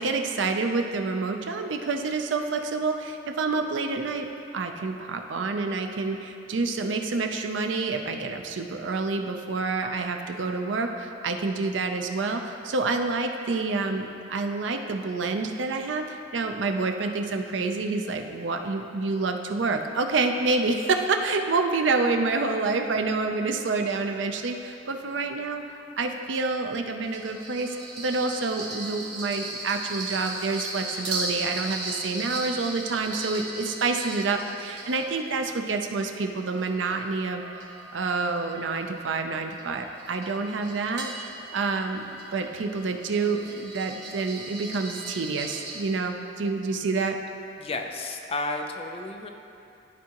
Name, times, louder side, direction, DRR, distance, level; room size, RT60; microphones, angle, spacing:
voice 1, 0.0-4.3 4.5-25.6 26.0-37.4 37.9-42.0 42.3-47.2, right 3 dB, 85° right, 5 dB, 0.5 m, -28 dB
sound 1, 27.0-35.5 36.1-45.8, right 2 dB, 60° right, 1.4 m, -38 dB
voice 2, 47.6-49.3, left 2 dB, 30° left, 4 dB, 0.5 m, -32 dB
12.5 x 4.7 x 2.9 m, 2.7 s
head